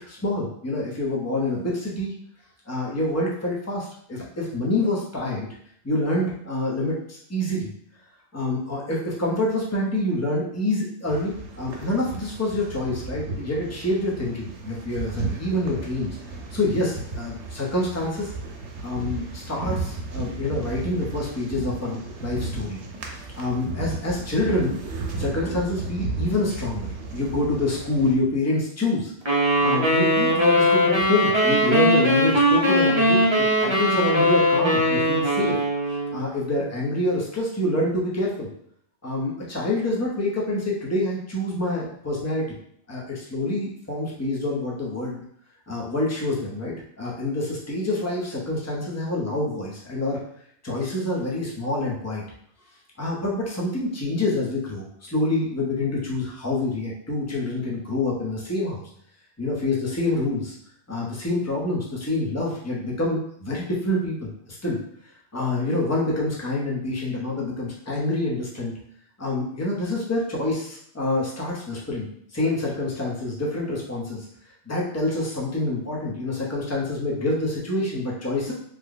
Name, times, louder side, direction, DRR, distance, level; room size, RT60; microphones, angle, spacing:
voice 1, 0.0-2.1 2.7-5.5 5.8-7.7 8.3-16.2 16.5-18.3 18.8-22.8 23.1-24.8 25.2-29.1 29.6-33.3 33.6-35.5 36.1-38.5 39.0-42.4 42.9-45.2 45.7-50.2 50.6-52.2 53.0-58.9 59.4-60.5 60.9-64.8 65.3-68.7 69.2-74.3 74.7-78.5, left 2 dB, 15° left, -4 dB, 0.6 m, -26 dB
sound 1, 11.1-28.1, right 3 dB, 75° right, 0.9 m, -34 dB
sound 2, 29.3-36.2, equal, 30° right, 0.6 m, -20 dB
3.2 x 2.2 x 3.8 m, 0.67 s
omnidirectional pair, 1.2 m